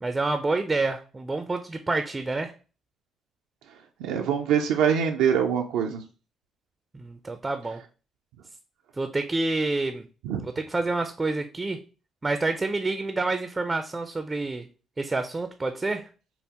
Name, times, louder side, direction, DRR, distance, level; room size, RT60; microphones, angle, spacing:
voice 1, 0.0-2.5 6.9-7.8 9.0-10.0 10.4-11.8 12.2-14.7 15.0-16.1, right 3 dB, 25° right, 8 dB, 0.4 m, -28 dB
voice 2, 4.0-6.0 10.2-10.4, right 8 dB, 90° right, 2 dB, 0.4 m, -24 dB
5.3 x 2.1 x 2.9 m, 0.34 s
supercardioid pair, 75°, 0 cm